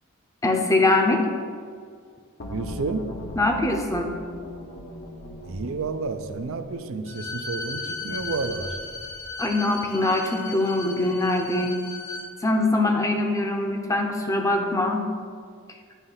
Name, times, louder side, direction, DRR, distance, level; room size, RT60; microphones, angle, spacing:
voice 1, 0.4-1.2 3.4-4.1 9.4-11.8 12.4-15.0, left 2 dB, 15° left, 3 dB, 0.7 m, -23 dB
sound 1, 2.4-9.3, left 1 dB, 55° left, 0.8 m, -40 dB
voice 2, 2.5-3.1 5.5-8.8, right 4 dB, 65° right, 9 dB, 0.5 m, -30 dB
Bowed string instrument, 7.0-12.3, left 3 dB, 80° left, 1.6 m, -36 dB
9.2 x 3.2 x 5.6 m, 2.1 s
head